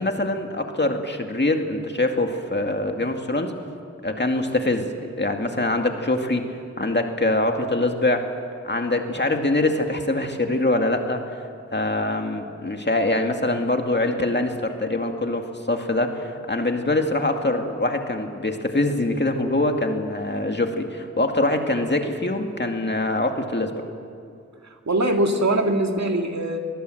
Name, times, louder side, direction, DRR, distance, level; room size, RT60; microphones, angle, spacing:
voice 1, 0.0-3.5 4.0-8.3 8.6-11.4 11.7-23.7, left 2 dB, 35° left, 4 dB, 2.2 m, -24 dB
voice 2, 24.9-26.6, right 1 dB, 65° right, 3 dB, 2.2 m, -22 dB
24.0 x 20.0 x 7.8 m, 2.4 s
wide cardioid pair, 60°, 29 cm